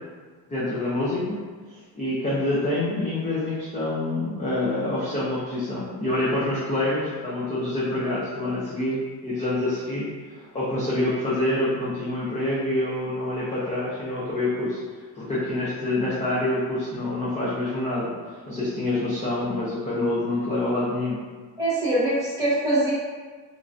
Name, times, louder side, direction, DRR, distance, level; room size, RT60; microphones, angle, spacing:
voice 1, 0.5-1.4 1.7-10.1 10.5-14.8 15.1-18.1 18.5-21.2, left 1 dB, 15° left, -9 dB, 0.4 m, -26 dB
voice 2, 21.6-22.9, right 1 dB, 10° right, -10 dB, 1.1 m, -23 dB
3.2 x 2.4 x 2.4 m, 1.5 s
cardioid pair, 160°, 44 cm